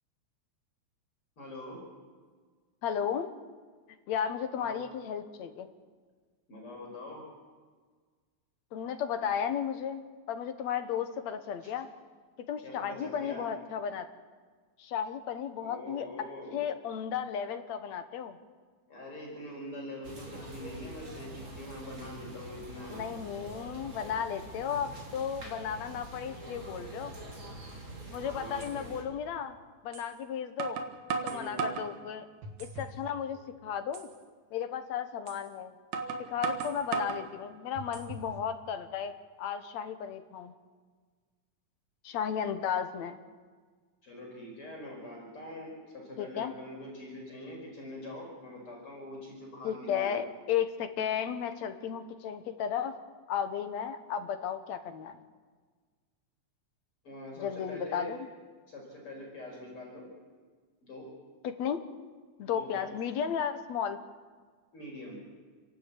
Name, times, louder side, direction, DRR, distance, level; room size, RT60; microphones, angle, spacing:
voice 1, 1.4-1.8 4.5-4.7 6.5-7.2 11.6-11.7 12.6-13.4 15.6-16.7 18.9-23.1 28.3-29.0 31.3-31.6 44.0-50.2 57.0-58.2 58.7-60.1 60.8-61.1 62.4-62.9 64.7-65.2, left 1 dB, 45° left, -2 dB, 5.7 m, -44 dB
voice 2, 2.8-3.3 4.1-5.7 8.7-11.9 12.5-14.1 14.8-16.1 16.5-18.4 22.9-27.1 28.1-29.6 29.8-30.8 31.2-32.3 32.6-34.1 34.5-35.7 36.2-39.1 39.4-40.5 42.0-43.2 46.2-46.5 49.6-53.0 53.3-55.2 57.4-58.2 61.4-61.8 62.4-64.0, left 8 dB, 70° left, 8 dB, 2.3 m, -34 dB
sound 1, 20.0-29.0, right 1 dB, 40° right, 4.4 m, -45 dB
sound 2, 28.0-28.1 28.6-28.7 29.9-30.1 30.6-31.9 32.4-33.0 33.4-33.5 33.9-34.1 35.3-35.4 35.9-37.2 37.8-38.3, right 5 dB, 70° right, 2.9 m, -35 dB
29.5 x 12.0 x 8.5 m, 1.5 s
omnidirectional pair, 3.4 m